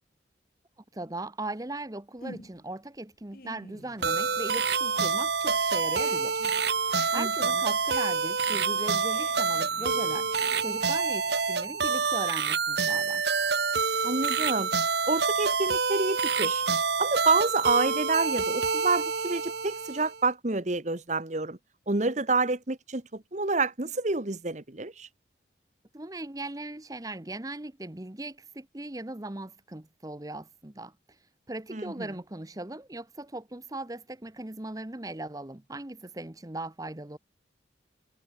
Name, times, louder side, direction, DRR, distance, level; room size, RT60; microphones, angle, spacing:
voice 1, 0.9-6.4 6.8-10.3 10.6-13.3 25.9-31.2 31.5-37.2, right 2 dB, 20° right, 0.9 m, -39 dB
sound 1, 2.2-2.8 3.1-4.5 4.8-11.3, left 2 dB, 50° left, 3.1 m, -49 dB
Nichols Electronics Omni Music Box - The Peddler, 4.0-20.2, right 5 dB, 60° right, 1.5 m, -27 dB
voice 2, 14.0-14.7 15.1-16.6 17.0-21.6 21.9-25.1 31.7-32.1, right 3 dB, 40° right, 1.2 m, -28 dB
head